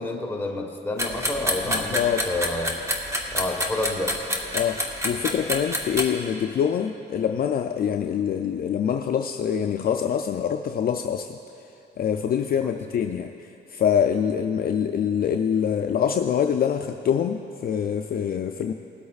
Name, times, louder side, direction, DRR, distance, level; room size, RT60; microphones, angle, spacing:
voice 1, 0.0-2.8 3.3-4.2 12.6-12.8, left 2 dB, 10° left, 0 dB, 1.3 m, -29 dB
sound 1, 1.0-6.0, equal, 15° right, 1.3 m, -27 dB
voice 2, 1.7-2.2 4.5-11.4 12.0-13.3 13.7-18.7, left 8 dB, 50° left, 5 dB, 0.4 m, -25 dB
20.0 x 8.2 x 2.4 m, 2.8 s
cardioid pair, 90°, 20 cm